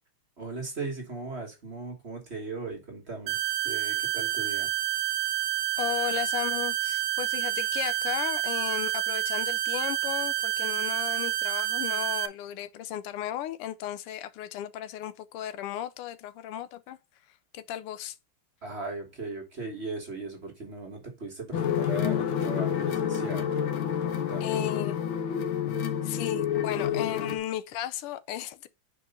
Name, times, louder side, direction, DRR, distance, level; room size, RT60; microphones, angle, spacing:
voice 1, 0.4-3.4 3.6-4.7 18.6-23.5 24.0-24.7 25.6-25.7, right 3 dB, 35° right, 1.4 m, -38 dB
sound 1, 3.3-12.3, right 13 dB, 85° right, 1.5 m, -29 dB
voice 2, 5.8-17.0 17.5-18.2 24.4-25.0 26.0-28.7, left 12 dB, 85° left, 1.6 m, -35 dB
sound 2, 21.5-27.4, left 9 dB, 70° left, 1.7 m, -28 dB
5.0 x 4.6 x 5.2 m
omnidirectional pair, 2.4 m